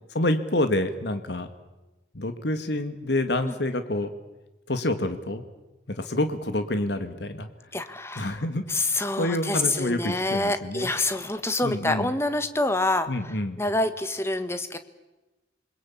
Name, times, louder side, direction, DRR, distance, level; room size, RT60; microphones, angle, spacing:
voice 1, 0.1-1.5 2.1-4.1 4.7-5.4 5.9-7.5 8.2-8.6 9.2-10.9 11.6-12.1 13.1-13.6, left 1 dB, 65° left, 9 dB, 1.9 m, -27 dB
voice 2, 7.7-8.3 8.7-13.1 13.6-14.8, left 2 dB, 15° left, 10 dB, 1.5 m, -26 dB
27.5 x 21.5 x 8.6 m, 1.1 s
head